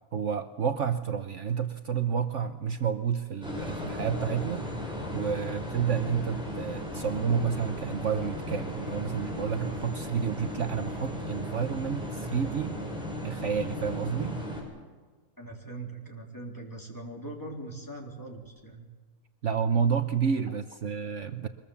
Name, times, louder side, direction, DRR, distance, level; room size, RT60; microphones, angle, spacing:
voice 1, 0.1-4.7 5.1-12.8 13.2-14.4 19.4-21.5, right 7 dB, 60° right, 8 dB, 1.2 m, -30 dB
sound 1, 3.4-14.6, left 1 dB, 5° right, 6.3 m, -36 dB
voice 2, 15.4-18.9, right 2 dB, 15° left, 0 dB, 3.5 m, -41 dB
23.5 x 21.5 x 7.1 m, 1.4 s
omnidirectional pair, 1.5 m